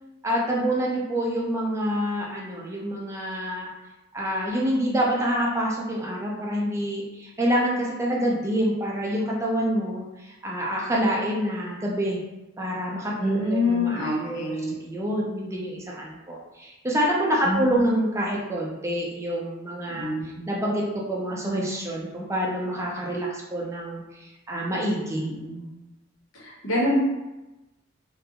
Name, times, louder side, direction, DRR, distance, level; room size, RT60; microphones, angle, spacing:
voice 1, 0.2-3.7 4.1-12.2 12.6-14.5 14.8-20.1 20.5-25.2, equal, 15° right, -4 dB, 0.4 m, -27 dB
voice 2, 13.2-14.7 17.4-17.9 19.9-20.5 25.2-25.7 26.3-27.0, left 1 dB, 80° left, -5 dB, 0.9 m, -26 dB
2.5 x 2.2 x 2.8 m, 1.0 s
head